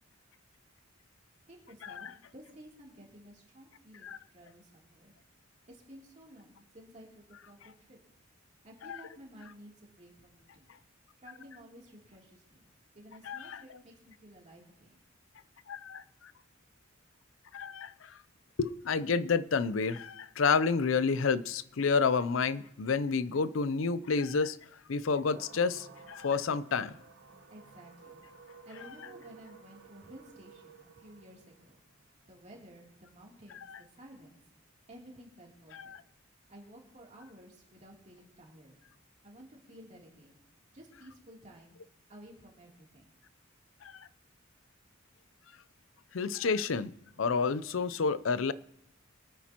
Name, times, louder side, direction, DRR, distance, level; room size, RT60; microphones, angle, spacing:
voice 1, 1.5-5.1 5.7-8.0 8.6-10.7 11.2-12.7 12.9-15.0 27.5-31.8 32.3-34.4 34.9-35.9 36.5-38.7 39.2-40.4 40.7-41.7 42.1-43.1, equal, 35° right, -2 dB, 3.0 m, -54 dB
voice 2, 13.3-13.6 15.7-16.3 17.5-18.2 18.6-24.6 24.9-26.9 33.7-33.8 35.7-36.0 43.8-44.1 46.1-46.9 47.2-48.5, left 5 dB, 75° left, 16 dB, 0.5 m, -30 dB
sound 1, 25.3-34.2, right 5 dB, 65° right, 1.3 m, -55 dB
23.5 x 9.3 x 2.9 m, 0.83 s
head